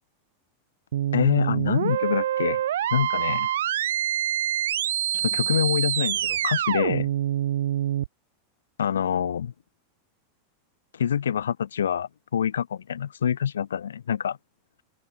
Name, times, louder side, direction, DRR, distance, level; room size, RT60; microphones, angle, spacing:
sound 1, 0.9-8.1, right 11 dB, 65° right, 6.5 m, -26 dB
voice 1, 1.1-2.6 2.9-3.5 5.1-7.1 8.8-9.5 10.9-14.4, left 8 dB, 75° left, 2.3 m, -26 dB
figure-of-eight pair, 90°, 0 cm